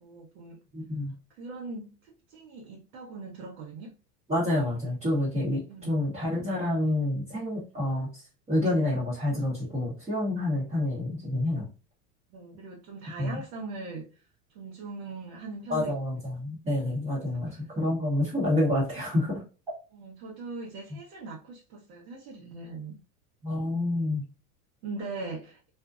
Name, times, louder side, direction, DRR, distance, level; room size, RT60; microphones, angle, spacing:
voice 1, 0.0-0.6 1.3-3.9 5.7-6.0 12.3-14.2 14.5-15.9 17.3-17.6 19.9-23.0 24.8-25.6, right 3 dB, 70° right, 1.0 m, -40 dB
voice 2, 0.7-1.1 4.3-11.7 13.2-13.3 15.7-19.4 20.9-21.0 23.4-24.2, left 1 dB, 15° right, 0.8 m, -28 dB
2.6 x 2.1 x 2.4 m
supercardioid pair, 130°, 44 cm